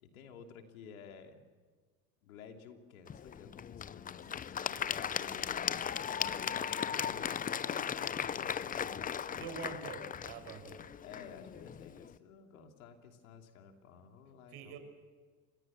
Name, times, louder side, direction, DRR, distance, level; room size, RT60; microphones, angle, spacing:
voice 1, 0.0-1.4 2.2-9.5 11.0-14.8, left 6 dB, 85° left, 4 dB, 3.0 m, -53 dB
Applause / Crowd, 3.1-12.1, left 8 dB, 20° left, 0.6 m, -37 dB
voice 2, 9.4-10.8 14.5-14.8, right 6 dB, 65° right, 8 dB, 5.8 m, -45 dB
26.5 x 20.5 x 7.4 m, 1.5 s
hypercardioid pair, 90°, 41 cm